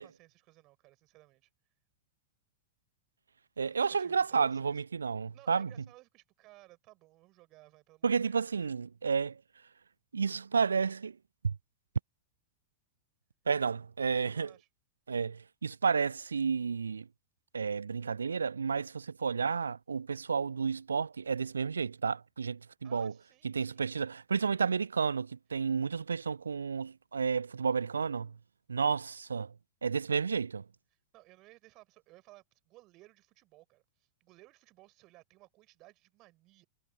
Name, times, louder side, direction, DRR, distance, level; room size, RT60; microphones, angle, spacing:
voice 1, 0.0-1.5 3.6-4.8 5.3-8.7 14.2-14.7 22.8-23.9 31.1-36.7, right 19 dB, 40° right, 5.1 m, -59 dB
voice 2, 3.6-5.7 8.0-9.4 10.1-11.2 11.4-11.6 13.5-14.5 15.1-17.1 17.5-23.1 23.4-28.3 28.7-29.5 29.8-30.6, right 5 dB, 75° right, 0.3 m, -31 dB
figure-of-eight pair, 90°, 0 cm